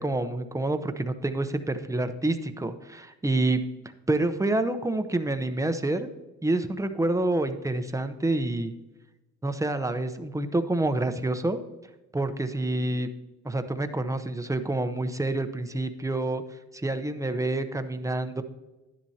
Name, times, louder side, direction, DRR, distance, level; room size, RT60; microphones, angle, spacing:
voice 1, 0.0-3.6 4.1-6.1 6.4-8.7 9.4-11.6 12.1-13.1 13.4-16.4 16.7-18.4, right 2 dB, 10° right, 9 dB, 0.7 m, -27 dB
11.5 x 10.5 x 2.8 m, 1.1 s
cardioid pair, 90°, 30 cm